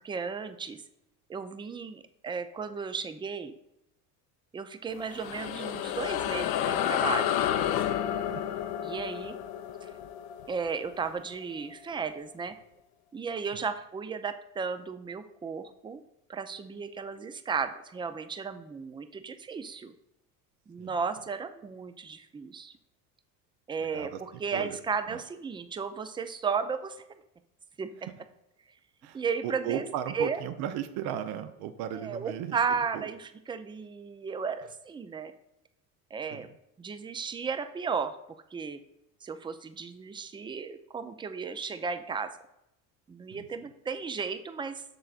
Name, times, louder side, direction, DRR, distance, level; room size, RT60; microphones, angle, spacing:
voice 1, 0.0-0.8 1.3-3.5 4.5-7.4 8.8-9.4 9.8-9.9 10.5-12.6 13.1-16.0 16.3-19.9 20.7-22.7 23.7-27.0 27.8-27.9 29.1-29.8 30.1-30.4 31.9-35.3 36.1-36.5 36.8-38.1 38.5-38.8 39.2-42.3 43.1-44.8, right 5 dB, 10° right, 10 dB, 0.3 m, -34 dB
sound 1, 4.9-11.7, left 10 dB, 55° left, 0.6 m, -31 dB
voice 2, 8.1-8.4 20.8-20.9 23.8-24.2 24.5-24.8 25.1-25.2 29.0-32.6 32.9-33.1 36.3-36.5 43.3-43.5, right 10 dB, 60° right, 10 dB, 0.7 m, -36 dB
7.7 x 6.5 x 2.4 m, 0.83 s
hypercardioid pair, 75°, 45 cm